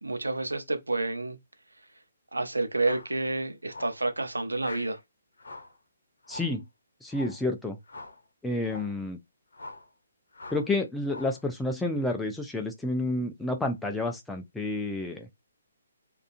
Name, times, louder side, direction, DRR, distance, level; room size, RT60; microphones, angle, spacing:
voice 1, 0.0-1.4 2.3-5.0, right 2 dB, 85° right, 0.5 m, -29 dB
sound 1, 2.8-3.2 3.7-4.0 4.6-5.0 5.4-5.8 6.2-6.6 7.1-7.4 7.9-8.2 8.6-9.0 9.5-9.9 10.3-10.7 11.1-11.4, left 2 dB, 70° left, 0.7 m, -44 dB
voice 2, 6.3-6.6 7.0-7.8 8.4-9.2 10.5-15.3, left 2 dB, 5° left, 0.4 m, -30 dB
2.3 x 2.3 x 2.5 m
figure-of-eight pair, 140°, 0 cm